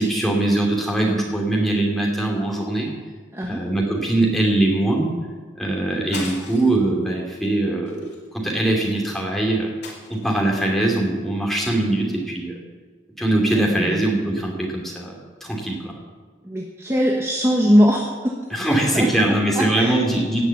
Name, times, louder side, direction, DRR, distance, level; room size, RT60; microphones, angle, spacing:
voice 1, 0.0-2.9 3.5-5.2 5.6-8.0 8.3-9.7 10.1-12.6 13.2-15.9 18.5-20.4, right 1 dB, ahead, -2 dB, 2.6 m, -22 dB
voice 2, 3.3-3.6 13.6-14.1 16.4-18.3 18.7-20.0, equal, 15° right, -1 dB, 1.1 m, -21 dB
sound 1, 6.1-6.9 7.3-7.5 7.9-8.8 9.8-10.6, left 3 dB, 60° left, 2.9 m, -38 dB
18.0 x 6.2 x 8.2 m, 1.5 s
head